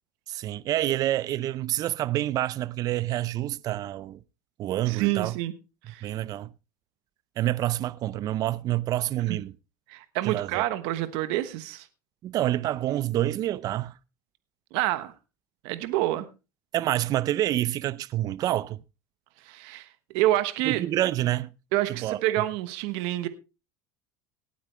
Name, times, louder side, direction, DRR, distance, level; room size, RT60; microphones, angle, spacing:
voice 1, 0.3-4.2 4.6-5.3 6.0-6.5 7.4-9.5 10.2-10.6 12.2-14.0 16.7-18.8 20.6-21.5 21.9-22.2, right 14 dB, 40° right, 0.5 m, -27 dB
voice 2, 4.9-5.5 5.9-6.1 9.3-9.4 9.9-11.9 14.7-15.1 15.6-16.3 19.4-19.9 20.1-20.8 21.7-23.3, right 15 dB, 70° right, 1.2 m, -27 dB
18.5 x 8.6 x 3.3 m
supercardioid pair, 130°, 9 cm